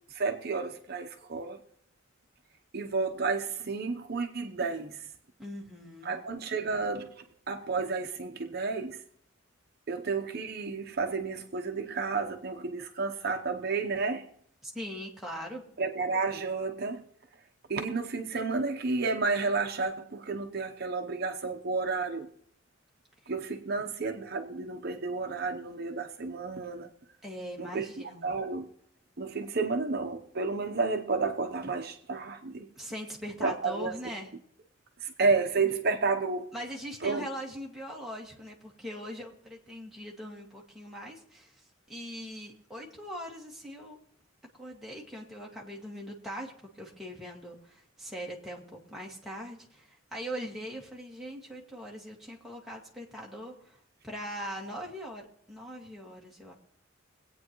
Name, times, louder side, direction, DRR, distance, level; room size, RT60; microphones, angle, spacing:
voice 1, 0.1-1.6 2.7-5.1 6.0-9.0 9.9-14.3 15.8-17.0 17.7-22.3 23.3-26.9 27.6-27.9 28.2-28.7 29.2-32.7 33.4-33.9 35.0-36.5 37.0-37.2, right 4 dB, 50° right, 5 dB, 0.8 m, -31 dB
voice 2, 5.4-6.2 14.6-15.6 27.2-28.3 32.8-34.3 36.5-44.0 44.6-56.5, equal, ahead, -3 dB, 2.0 m, -41 dB
23.5 x 8.8 x 3.1 m, 0.68 s
head